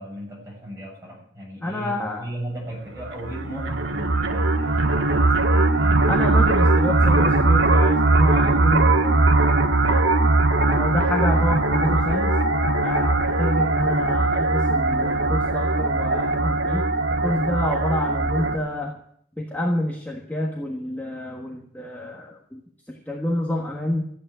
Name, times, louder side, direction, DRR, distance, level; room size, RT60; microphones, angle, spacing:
voice 1, 0.0-6.0, right 1 dB, 15° right, -4 dB, 7.9 m, -36 dB
voice 2, 1.6-2.3 6.1-10.3 10.7-12.3 12.8-18.9 19.4-22.6 22.9-24.0, left 1 dB, 10° left, -1 dB, 1.4 m, -28 dB
sound 1, 3.0-18.6, right 2 dB, 75° right, 1.5 m, -20 dB
14.0 x 9.1 x 9.1 m, 0.67 s
head